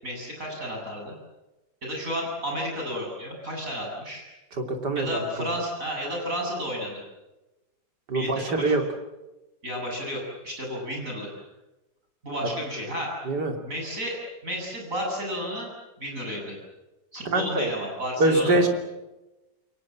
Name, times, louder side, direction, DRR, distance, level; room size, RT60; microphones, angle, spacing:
voice 1, 0.0-1.1 1.8-4.2 4.9-7.0 8.1-8.7 9.6-11.3 12.2-13.1 13.7-14.2 14.4-15.7 16.0-16.5 17.1-18.6, equal, 50° right, 0 dB, 8.6 m, -32 dB
voice 2, 4.6-5.5 8.1-8.8 13.3-13.6 17.3-17.7 18.2-18.7, right 2 dB, 70° right, 4 dB, 3.6 m, -24 dB
28.5 x 22.5 x 7.5 m, 1.0 s
omnidirectional pair, 1.9 m